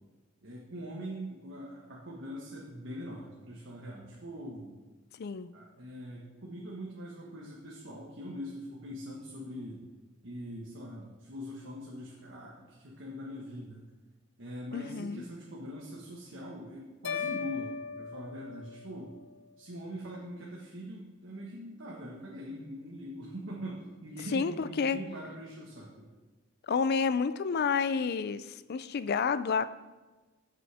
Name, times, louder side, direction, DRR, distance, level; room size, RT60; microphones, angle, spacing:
voice 1, 0.4-4.8 5.5-9.8 10.2-13.8 14.4-19.1 19.6-26.1, equal, 65° right, -4 dB, 1.5 m, -42 dB
voice 2, 5.2-5.5 14.7-15.2 24.3-25.0 26.7-29.7, left 5 dB, 50° left, 14 dB, 0.4 m, -30 dB
sound 1, 17.0-19.3, left 6 dB, 70° left, 0.8 m, -38 dB
12.5 x 7.5 x 3.5 m, 1.2 s
head